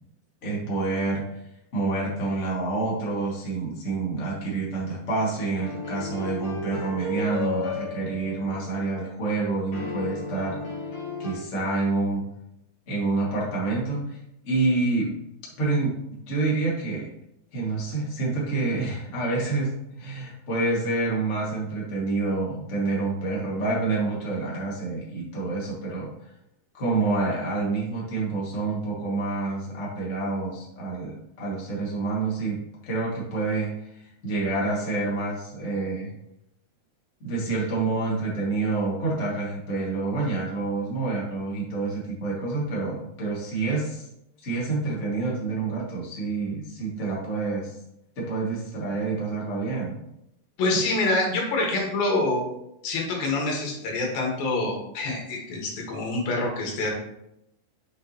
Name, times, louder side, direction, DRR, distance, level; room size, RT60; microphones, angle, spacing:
voice 1, 0.4-1.2 1.7-10.6 11.2-12.2 12.9-14.2 14.4-15.1 15.6-17.1 17.5-19.7 20.0-26.1 26.7-32.6 32.8-36.1 37.2-44.0 44.4-47.7 48.1-50.0 50.7-50.8, right 3 dB, 30° left, -5 dB, 1.5 m, -28 dB
sound 1, 5.6-8.9 9.7-11.3, left 3 dB, 50° left, 2.5 m, -33 dB
voice 2, 50.6-52.4 52.8-56.9, left 2 dB, 70° left, -1 dB, 3.4 m, -26 dB
7.3 x 6.2 x 3.0 m, 0.82 s
omnidirectional pair, 4.3 m